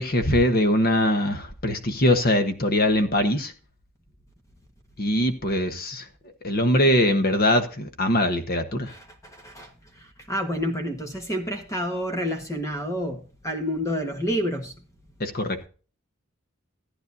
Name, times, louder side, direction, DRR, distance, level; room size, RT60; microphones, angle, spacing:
voice 1, 0.0-3.5 5.0-6.1 6.4-8.9 15.2-15.6, left 1 dB, 45° left, 1.2 m, -22 dB
voice 2, 10.3-13.2 13.4-14.7, equal, 15° left, 1.4 m, -28 dB
15.0 x 10.0 x 2.7 m
head